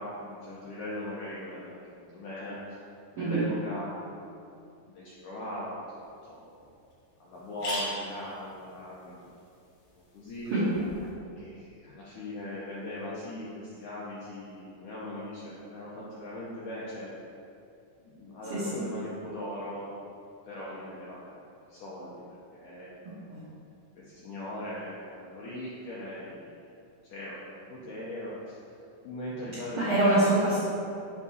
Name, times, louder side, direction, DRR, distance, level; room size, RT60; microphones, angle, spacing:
voice 1, 0.0-2.8 3.2-4.4 4.9-5.8 6.2-6.5 7.2-9.2 10.1-10.5 11.4-17.1 18.0-19.9 20.5-21.4 21.7-22.2 22.5-23.5 24.0-26.6 27.0-27.4 27.7-28.6 29.0-30.0, left 1 dB, 85° left, -7 dB, 1.8 m, -39 dB
sound 1, 6.0-6.1 6.6-6.7 6.9-7.0 7.3-11.1, left 1 dB, 65° left, 1.7 m, -41 dB
voice 2, 18.5-18.8 23.3-23.4 29.8-30.6, right 2 dB, 75° right, -11 dB, 1.5 m, -25 dB
7.3 x 4.7 x 2.7 m, 2.6 s
omnidirectional pair, 4.5 m